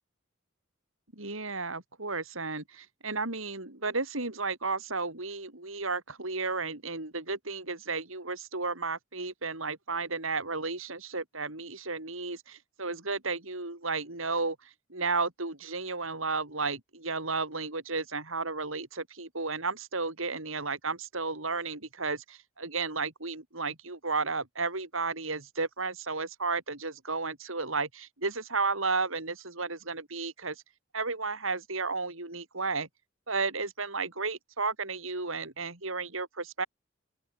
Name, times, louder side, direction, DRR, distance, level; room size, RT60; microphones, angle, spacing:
voice 1, 1.1-30.6 30.9-32.9 33.3-36.7, right 4 dB, 75° right, 4.8 m, -33 dB
open air
head